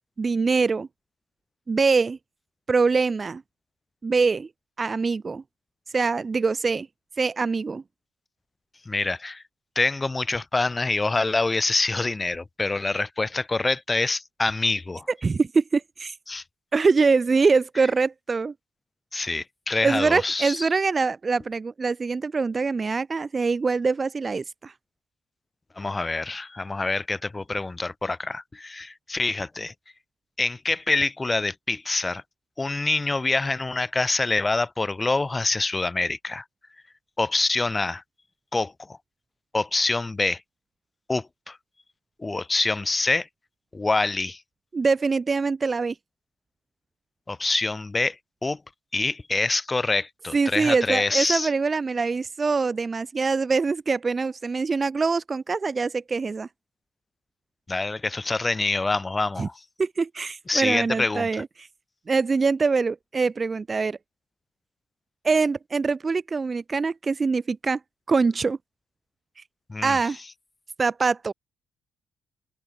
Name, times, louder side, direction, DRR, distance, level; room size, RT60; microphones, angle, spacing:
voice 1, 0.2-0.9 1.7-2.2 2.7-3.4 4.0-4.5 4.8-5.4 5.9-6.9 7.2-7.8 15.2-16.1 16.7-18.5 19.8-24.7 44.7-45.9 50.3-56.5 59.4-59.5 59.8-61.7 62.1-64.0 65.2-67.8 68.1-68.6 69.8-70.2 70.8-71.3, right 4 dB, 30° right, 1.6 m, -24 dB
voice 2, 8.9-9.4 9.8-15.1 16.3-16.4 19.1-20.7 25.8-29.7 30.4-32.2 32.6-36.4 37.2-38.0 38.5-39.0 39.5-40.4 41.1-41.6 42.2-43.3 43.7-44.4 47.3-48.2 48.4-48.6 48.9-51.5 57.7-59.6 60.5-61.4 69.7-70.0, left 3 dB, 20° left, 5.7 m, -26 dB
open air
cardioid pair, 90°, 0 cm